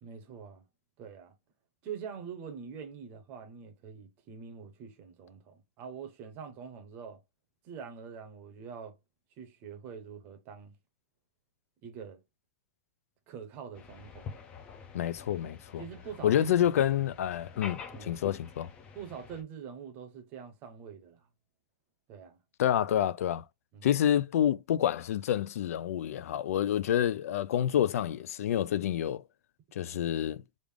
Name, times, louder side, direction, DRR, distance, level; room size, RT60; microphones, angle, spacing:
voice 1, 0.0-0.6 1.0-1.3 1.8-7.2 7.6-9.0 9.4-10.7 11.8-12.2 13.3-14.4 15.8-16.8 17.9-18.2 18.9-21.3 22.1-22.4 23.7-23.9, right 7 dB, 25° right, 0.7 m, -44 dB
sound 1, 13.7-19.4, left 6 dB, 15° left, 0.4 m, -47 dB
voice 2, 14.9-15.8 16.2-18.7 22.6-23.4 23.8-29.2 29.7-30.4, left 10 dB, 85° left, 0.3 m, -28 dB
3.3 x 2.5 x 3.4 m
supercardioid pair, 180°, 8 cm